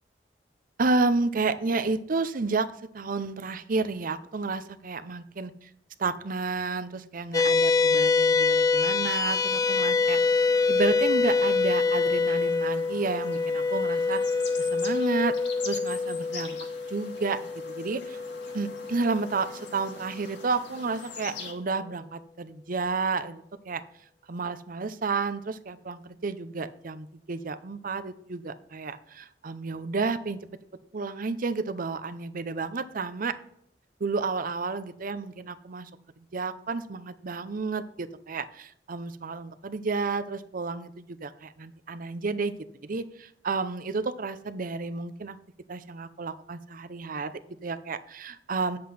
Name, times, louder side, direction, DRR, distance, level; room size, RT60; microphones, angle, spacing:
voice 1, 0.8-5.5 6.0-14.2 14.6-15.4 15.7-16.6 16.9-17.4 17.7-18.2 18.5-23.8 24.3-30.4 30.9-33.4 34.0-35.9 36.2-42.5 42.8-45.4 45.7-48.8, right 3 dB, 50° right, 12 dB, 0.6 m, -31 dB
sound 1, 7.3-20.0, left 4 dB, 20° left, 0.3 m, -25 dB
sound 2, 9.0-21.5, left 4 dB, 75° left, 1.9 m, -44 dB
9.5 x 7.8 x 4.2 m, 0.70 s
head